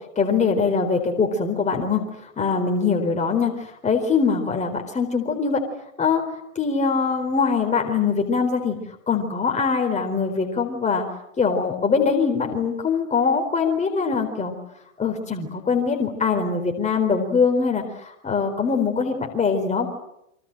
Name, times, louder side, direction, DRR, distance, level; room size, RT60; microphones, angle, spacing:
voice 1, 0.2-2.0 2.4-5.6 6.0-6.2 6.6-8.8 9.1-11.0 11.4-14.5 15.0-19.9, left 5 dB, 15° left, 3 dB, 4.3 m, -22 dB
29.0 x 25.0 x 7.8 m, 0.82 s
hypercardioid pair, 120°, 41 cm